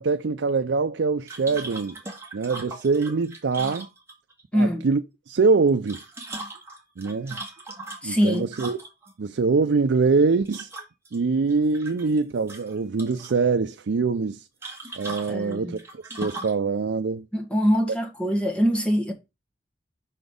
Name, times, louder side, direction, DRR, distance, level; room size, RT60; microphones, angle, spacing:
voice 1, 0.0-2.0 2.3-3.9 4.5-5.0 5.3-6.0 7.0-7.4 8.0-8.8 9.2-10.7 11.1-14.4 15.0-15.8 16.2-17.2, right 4 dB, 85° right, 0.5 m, -23 dB
sound 1, 1.3-4.4 5.7-9.1 10.5-11.2 11.5-12.2 12.5-13.4 14.6-16.6, right 2 dB, 15° right, 1.6 m, -39 dB
voice 2, 4.5-4.9 8.0-8.5 15.3-15.8 17.3-19.1, equal, 5° left, 1.4 m, -23 dB
5.9 x 4.1 x 5.1 m
head